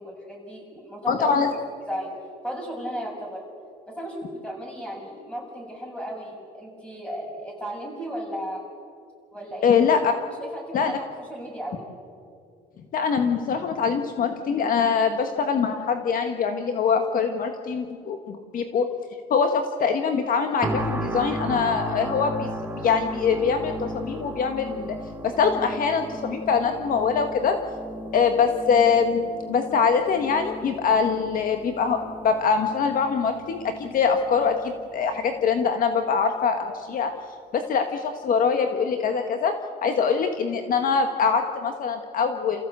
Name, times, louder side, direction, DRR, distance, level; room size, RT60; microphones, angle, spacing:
voice 1, 0.0-1.4 1.8-2.1 2.4-3.4 3.9-8.7 9.3-9.7 10.2-11.8, equal, 5° left, 0 dB, 7.1 m, -35 dB
voice 2, 1.1-1.5 9.6-10.1 10.7-10.9 12.9-18.9 19.3-22.5 22.8-25.0 25.2-27.6 28.1-37.1 37.5-39.5 39.8-42.7, left 6 dB, 55° left, 6 dB, 1.6 m, -23 dB
sound 1, 20.6-35.6 36.1-36.3, equal, 10° right, 1.4 m, -36 dB
28.0 x 15.5 x 8.2 m, 2.2 s
cardioid pair, 110°, 17 cm